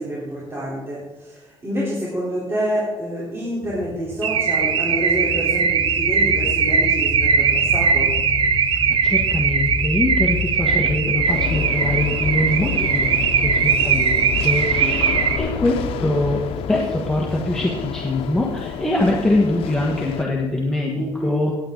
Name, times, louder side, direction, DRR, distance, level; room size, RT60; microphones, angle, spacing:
voice 1, 0.0-8.1 10.6-10.9 14.3-15.0 20.9-21.4, equal, 25° right, -7 dB, 3.8 m, -28 dB
sound 1, 3.6-20.6, left 6 dB, 55° left, 0.7 m, -31 dB
Car / Alarm, 4.2-15.4, right 6 dB, 65° right, 0.9 m, -20 dB
voice 2, 8.9-16.4 16.7-21.5, left 1 dB, 5° left, -2 dB, 1.4 m, -23 dB
sound 2, 11.3-20.2, left 9 dB, 90° left, 0.6 m, -32 dB
17.5 x 8.9 x 3.9 m, 1.2 s
cardioid pair, 125°, 9 cm